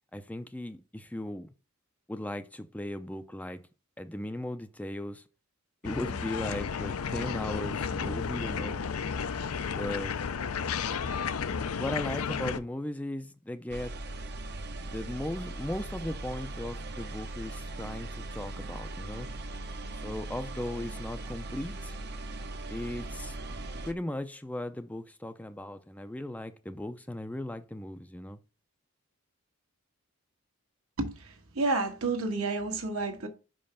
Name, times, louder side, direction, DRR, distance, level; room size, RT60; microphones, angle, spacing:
voice 1, 0.1-1.5 2.1-3.6 4.0-5.2 5.8-8.8 9.7-10.1 11.8-13.9 14.8-19.3 19.9-22.0 22.7-23.4 23.9-28.4, left 1 dB, 5° left, 0.4 m, -37 dB
sound 1, 5.8-12.6, left 6 dB, 85° left, 0.6 m, -33 dB
sound 2, 13.7-23.9, right 2 dB, 50° right, 0.8 m, -39 dB
voice 2, 31.0-33.3, right 3 dB, 75° right, 1.5 m, -30 dB
5.3 x 4.9 x 5.6 m
head